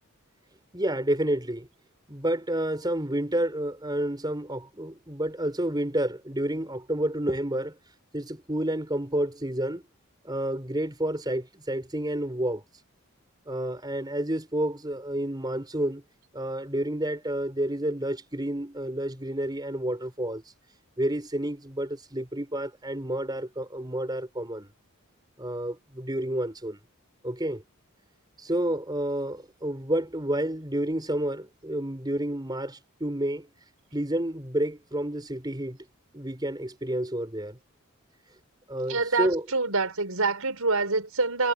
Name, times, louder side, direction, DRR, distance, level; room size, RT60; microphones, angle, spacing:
voice 1, 0.7-1.7 2.1-7.8 8.1-9.8 10.2-12.6 13.5-16.0 16.3-20.4 21.0-24.7 25.4-26.8 27.2-27.6 28.4-33.5 33.9-35.8 36.1-37.6 38.7-39.5, right 1 dB, 20° right, 5.3 m, -30 dB
voice 2, 38.9-41.5, right 3 dB, 80° right, 5.5 m, -26 dB
head